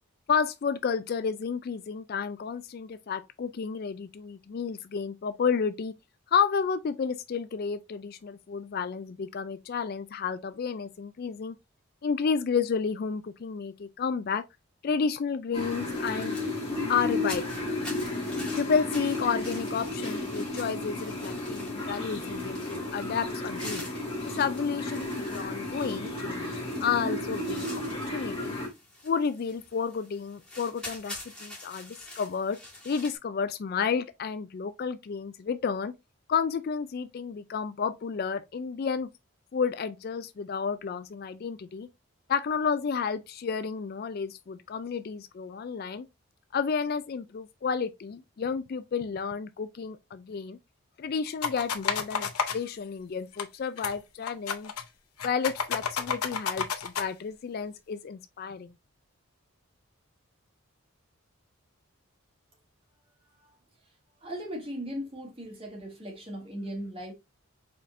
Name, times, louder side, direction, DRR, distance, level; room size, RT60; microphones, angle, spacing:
voice 1, 0.3-5.9 6.3-11.6 12.0-14.4 14.8-16.4 16.9-17.4 18.6-23.8 24.2-27.7 27.9-28.6 29.0-32.6 32.8-35.9 36.3-39.1 39.5-41.9 42.3-46.1 46.5-50.6 51.0-54.7 55.2-58.7, left 6 dB, 45° left, 0.3 m, -31 dB
sound 1, 15.5-28.7, left 2 dB, 25° left, 1.7 m, -33 dB
sound 2, 15.8-33.1, left 1 dB, 5° left, 2.3 m, -46 dB
sound 3, 51.4-52.6 53.4-53.5 53.8-53.9 54.2-54.8 55.2-57.1, left 6 dB, 85° left, 0.7 m, -30 dB
voice 2, 64.2-67.1, equal, 25° right, 1.7 m, -38 dB
5.1 x 4.2 x 2.5 m
head